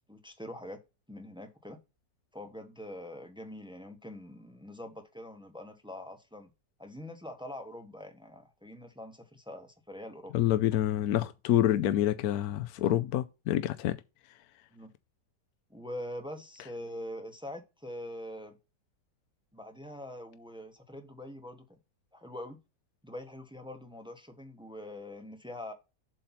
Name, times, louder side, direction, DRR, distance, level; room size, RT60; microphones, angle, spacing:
voice 1, 0.1-0.8 1.1-1.8 2.3-6.5 6.8-10.3 14.7-14.9 15.7-18.6 19.5-21.8 22.1-22.6 23.0-25.7, left 1 dB, 5° right, 0.6 m, -44 dB
voice 2, 10.3-14.0, left 12 dB, 70° left, 0.9 m, -27 dB
7.7 x 2.7 x 5.7 m
omnidirectional pair, 1.9 m